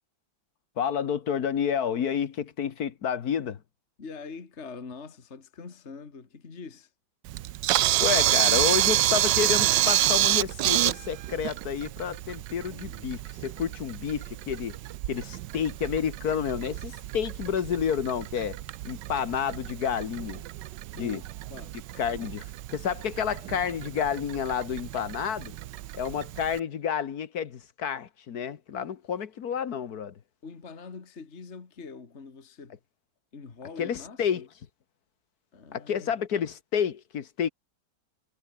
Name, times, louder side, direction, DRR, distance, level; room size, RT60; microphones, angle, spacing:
voice 1, 0.8-3.6 8.0-14.8 15.1-18.6 18.8-20.4 21.0-21.2 22.0-25.5 25.9-30.1 33.8-34.5 35.7-37.5, left 8 dB, 55° left, 1.6 m, -30 dB
voice 2, 4.0-6.9 21.0-21.8 30.4-32.8 33.3-34.4 35.5-36.2, left 4 dB, 35° left, 2.2 m, -44 dB
Camera, 7.3-26.6, right 15 dB, 75° right, 1.3 m, -29 dB
omnidirectional pair, 2.0 m